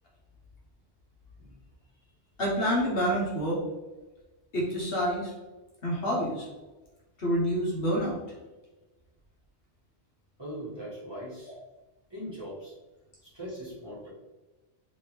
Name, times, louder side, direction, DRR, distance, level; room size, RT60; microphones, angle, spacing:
voice 1, 2.4-3.6 4.5-5.3 5.8-6.5 7.2-8.2, equal, 60° left, -4 dB, 1.0 m, -27 dB
voice 2, 10.4-11.5 12.1-12.7 13.2-14.1, equal, 20° right, -9 dB, 1.3 m, -40 dB
3.3 x 3.1 x 2.9 m, 1.1 s
omnidirectional pair, 1.2 m